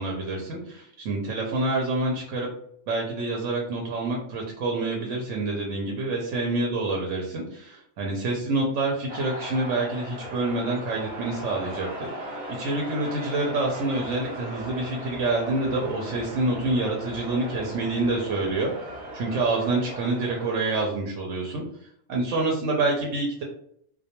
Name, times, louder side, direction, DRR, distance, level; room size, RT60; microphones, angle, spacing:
voice 1, 0.0-2.5 2.9-12.1 12.6-18.7 19.1-21.6 22.1-23.4, right 2 dB, 75° right, -1 dB, 0.9 m, -27 dB
sound 1, 9.1-20.9, right 1 dB, 45° right, 0.7 m, -38 dB
2.2 x 2.2 x 2.8 m, 0.68 s
omnidirectional pair, 1.3 m